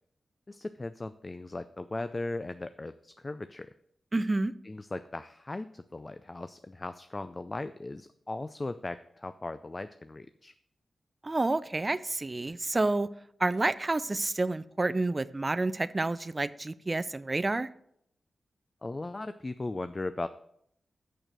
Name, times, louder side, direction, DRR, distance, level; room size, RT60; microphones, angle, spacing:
voice 1, 0.5-3.7 4.6-10.5 18.8-20.3, left 2 dB, 35° left, 12 dB, 0.4 m, -38 dB
voice 2, 4.1-4.5 11.2-13.1 13.4-17.7, right 2 dB, 35° right, 16 dB, 0.4 m, -29 dB
6.8 x 6.3 x 6.2 m, 0.72 s
cardioid pair, 55°, 0 cm